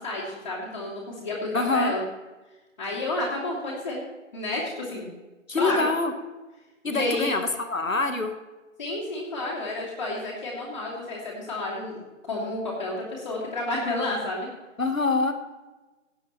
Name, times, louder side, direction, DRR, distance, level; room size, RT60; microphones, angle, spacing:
voice 1, 0.0-2.0 2.8-4.0 4.3-5.1 5.5-5.8 6.9-7.3 8.8-12.0 12.2-14.5, left 2 dB, 35° left, -6 dB, 2.7 m, -30 dB
voice 2, 1.5-1.9 5.5-6.1 6.8-8.3 14.8-15.3, left 3 dB, 80° left, 7 dB, 1.6 m, -25 dB
17.0 x 7.2 x 4.4 m, 1.1 s
figure-of-eight pair, 165°, 40 cm